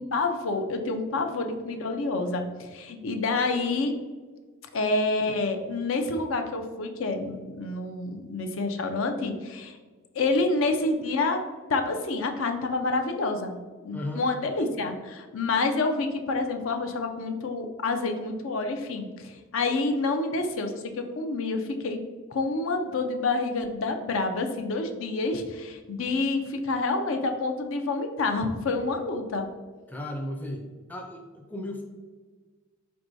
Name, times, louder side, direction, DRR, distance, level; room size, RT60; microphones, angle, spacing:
voice 1, 0.0-3.9 4.7-9.8 10.1-11.4 11.7-13.6 13.8-22.0 22.3-29.5, left 3 dB, 70° left, 5 dB, 0.5 m, -28 dB
voice 2, 13.9-14.3 29.9-31.8, left 1 dB, 10° left, 2 dB, 0.4 m, -35 dB
4.7 x 4.5 x 2.6 m, 1.4 s
head